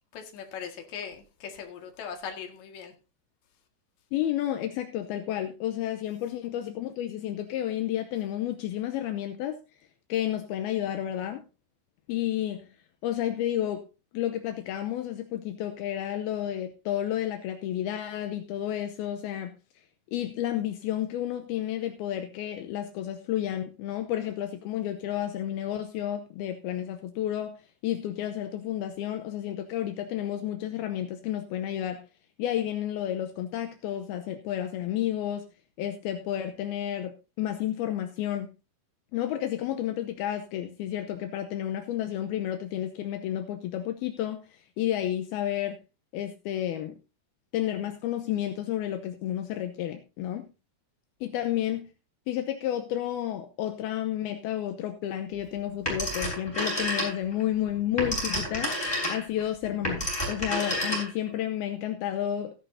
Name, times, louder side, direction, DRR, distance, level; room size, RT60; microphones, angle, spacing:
voice 1, 0.1-2.9, left 7 dB, 50° left, 2.8 m, -39 dB
voice 2, 4.1-9.6 10.1-11.4 12.1-12.7 13.0-13.8 14.1-19.6 20.1-27.6 27.8-32.1 32.4-35.5 35.8-38.5 39.1-45.8 46.1-47.0 47.5-50.5 51.2-51.9 52.3-58.7 59.1-62.5, left 11 dB, 80° left, 2.6 m, -31 dB
Telephone, 55.9-57.4 57.8-61.3, equal, 5° left, 5.9 m, -30 dB
16.5 x 11.0 x 2.7 m
omnidirectional pair, 4.7 m